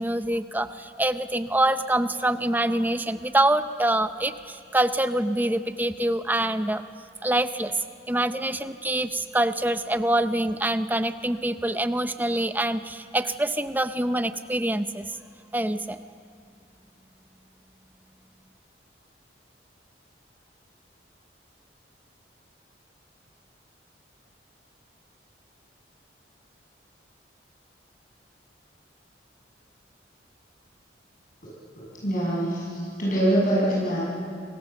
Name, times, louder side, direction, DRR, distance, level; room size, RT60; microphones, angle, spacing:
voice 1, 0.0-6.8 7.2-7.7 8.1-15.1 15.5-16.0, right 1 dB, 10° right, 10 dB, 0.7 m, -25 dB
voice 2, 31.7-34.0, right 1 dB, 45° left, -5 dB, 6.8 m, -24 dB
29.0 x 24.0 x 7.0 m, 2.3 s
head